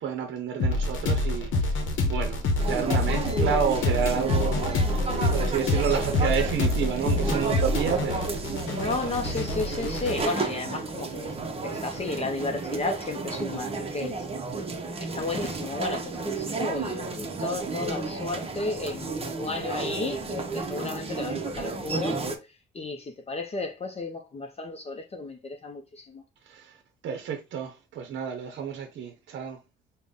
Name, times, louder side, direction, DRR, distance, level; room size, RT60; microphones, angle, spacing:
voice 1, 0.0-8.4 9.0-9.2 26.5-26.7 27.0-29.6, right 7 dB, 65° right, 0.6 m, -30 dB
sound 1, 0.6-10.2, left 2 dB, 80° left, 0.8 m, -27 dB
sound 2, 2.6-22.4, right 3 dB, 30° right, 0.7 m, -32 dB
voice 2, 8.6-11.3 11.6-14.1 15.0-22.2 22.7-26.2, left 3 dB, 30° left, 0.6 m, -33 dB
3.8 x 2.1 x 3.5 m
cardioid pair, 90°, 20 cm